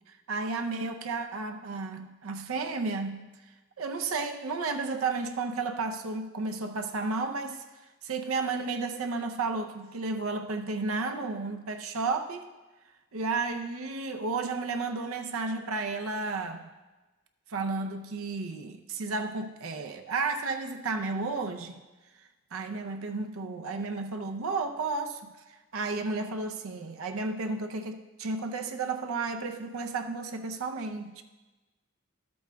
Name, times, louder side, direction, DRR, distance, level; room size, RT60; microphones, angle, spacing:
voice 1, 0.3-3.3 3.8-7.6 8.0-12.5 13.1-16.7 17.5-21.8 22.5-25.3 25.7-31.2, right 3 dB, 85° right, 5 dB, 0.6 m, -32 dB
12.5 x 8.4 x 2.2 m, 1.2 s
head